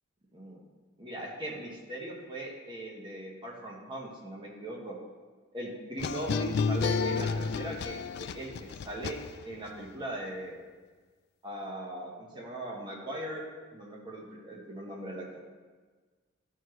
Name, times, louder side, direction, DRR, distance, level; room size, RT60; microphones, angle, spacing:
voice 1, 0.3-0.6 1.0-5.0 5.5-9.2 9.4-10.7 11.4-13.5 13.7-15.2, right 1 dB, 20° right, -3 dB, 1.2 m, -39 dB
sound 1, 6.0-9.7, left 4 dB, 50° left, 0.3 m, -31 dB
13.5 x 4.8 x 3.1 m, 1.4 s
head